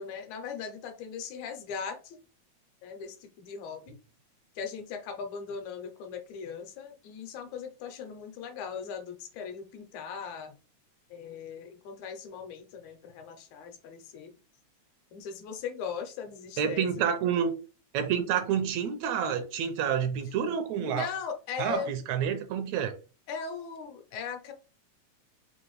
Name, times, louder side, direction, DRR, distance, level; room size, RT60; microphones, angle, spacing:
voice 1, 0.0-2.2 2.8-4.0 4.6-10.6 11.1-14.3 15.1-17.1 20.8-21.9 23.3-24.5, left 6 dB, 80° left, 2.0 m, -39 dB
voice 2, 16.6-17.5 17.9-21.1 21.6-22.9, right 8 dB, 80° right, 1.7 m, -28 dB
5.1 x 2.6 x 3.0 m
omnidirectional pair, 3.4 m